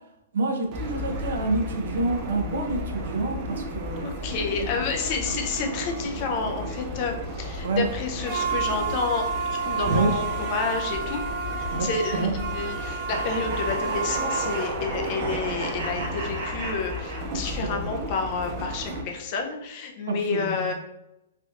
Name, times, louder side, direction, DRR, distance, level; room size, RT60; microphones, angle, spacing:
voice 1, 0.3-4.1 6.4-6.5 7.6-7.8 9.9-10.1 11.7-11.9 12.1-12.3 17.6-17.8 20.1-20.6, right 3 dB, 75° right, 3 dB, 0.6 m, -27 dB
sound 1, 0.7-19.0, right 2 dB, 30° right, 0.4 m, -31 dB
voice 2, 4.0-11.2 11.6-20.7, left 4 dB, 35° left, 3 dB, 0.4 m, -30 dB
sound 2, 13.1-17.7, right 2 dB, 55° right, 1.0 m, -35 dB
3.4 x 2.6 x 2.4 m, 0.87 s
hypercardioid pair, 155°, 0 cm